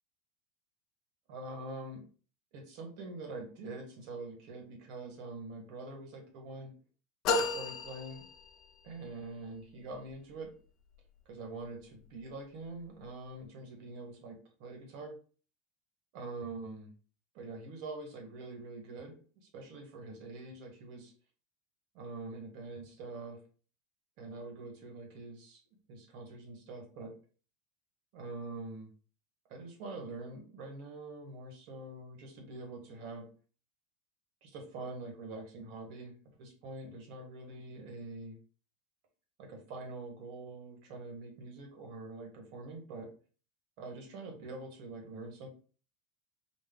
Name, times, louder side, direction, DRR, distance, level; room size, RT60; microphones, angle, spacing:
voice 1, 1.3-2.1 2.5-6.7 7.4-8.2 8.8-10.6 11.2-15.2 16.1-16.9 17.3-21.1 21.9-23.4 24.2-25.6 25.9-27.2 28.1-28.9 29.5-33.3 34.4-38.4 39.4-43.1 43.8-45.5, right 2 dB, 55° right, 2 dB, 1.6 m, -45 dB
sound 1, 7.2-8.9, left 4 dB, 45° left, 0.7 m, -33 dB
4.3 x 2.5 x 3.7 m, 0.39 s
supercardioid pair, 140°, 0 cm